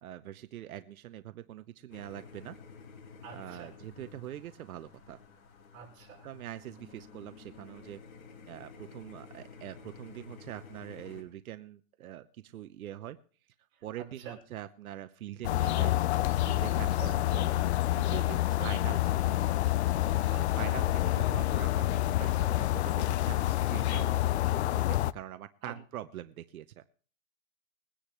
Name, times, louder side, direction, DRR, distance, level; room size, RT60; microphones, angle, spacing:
voice 1, 0.0-2.6 3.3-5.2 6.2-8.0 8.5-13.2 13.8-15.9 16.4-17.5 17.9-19.6 20.3-24.1 24.4-26.8, right 12 dB, 90° right, 11 dB, 0.9 m, -44 dB
sound 1, 1.9-11.2, left 5 dB, 75° left, 3.5 m, -52 dB
voice 2, 3.2-3.7 5.7-6.3 13.7-14.4 16.7-17.1 18.3-18.7 20.2-20.8 25.6-25.7, right 7 dB, 35° right, -1 dB, 5.5 m, -47 dB
sound 2, 15.4-25.1, left 15 dB, 55° left, 0.5 m, -28 dB
21.5 x 10.0 x 3.1 m, 0.41 s
supercardioid pair, 170°, 41 cm